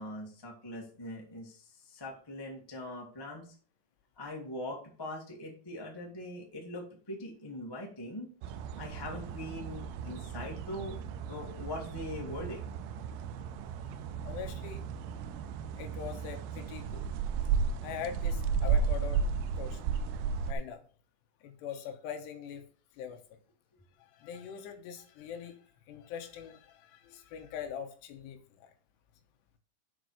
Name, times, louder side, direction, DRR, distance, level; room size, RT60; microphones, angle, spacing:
voice 1, 0.0-3.5 4.2-8.3 8.8-11.0 11.3-12.6 15.6-15.7 17.1-17.2, left 1 dB, 35° left, 0 dB, 0.4 m, -42 dB
sound 1, 8.4-20.5, right 6 dB, 80° right, 2.6 m, -34 dB
voice 2, 14.2-14.8 15.8-17.0 17.8-19.2 19.6-19.8 20.5-20.8 21.4-22.7 23.0-23.2 24.0-28.7, left 8 dB, 75° left, 6 dB, 3.1 m, -42 dB
8.0 x 5.2 x 6.4 m, 0.41 s
omnidirectional pair, 5.1 m